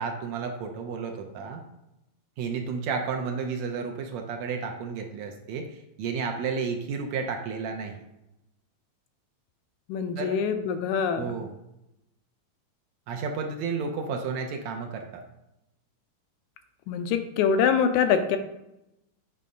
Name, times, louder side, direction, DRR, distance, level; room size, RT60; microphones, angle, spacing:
voice 1, 0.0-1.6 2.4-7.9 10.2-10.4 11.1-11.5 13.1-15.2, right 5 dB, 75° right, 3 dB, 1.9 m, -32 dB
voice 2, 9.9-11.3 16.9-18.4, left 7 dB, 80° left, 8 dB, 2.0 m, -24 dB
8.4 x 3.3 x 5.2 m, 0.89 s
omnidirectional pair, 3.5 m